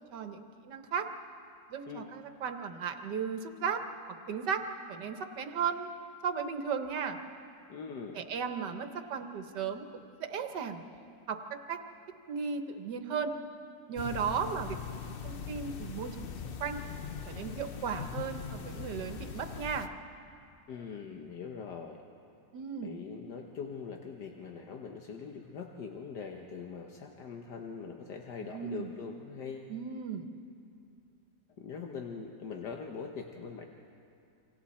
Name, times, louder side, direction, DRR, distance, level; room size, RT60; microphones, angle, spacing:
voice 1, 0.1-1.1 1.7-3.8 4.3-4.6 4.9-5.9 6.2-7.2 8.1-10.8 11.3-11.8 12.3-13.3 13.9-14.8 15.2-16.8 17.3-19.9 22.5-23.0 28.4-28.9 29.7-30.3, right 6 dB, 85° right, 7 dB, 1.7 m, -35 dB
voice 2, 7.7-8.2 20.7-22.0 22.8-29.7 31.6-33.6, left 5 dB, 80° left, 2 dB, 1.7 m, -42 dB
sound 1, 14.0-19.9, left 6 dB, 50° left, 0.7 m, -41 dB
28.5 x 25.5 x 4.3 m, 2.5 s
omnidirectional pair, 1.8 m